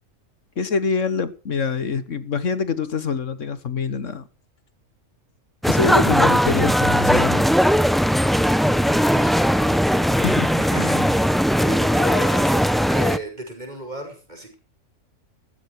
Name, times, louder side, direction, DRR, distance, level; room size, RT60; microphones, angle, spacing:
voice 1, 0.6-4.2 5.6-7.5 10.2-11.1, left 5 dB, 70° left, 1.5 m, -25 dB
sound 1, 5.6-13.2, equal, ahead, 0.5 m, -19 dB
voice 2, 8.7-14.5, equal, 35° right, 5.7 m, -34 dB
15.5 x 14.0 x 4.7 m
omnidirectional pair, 1.4 m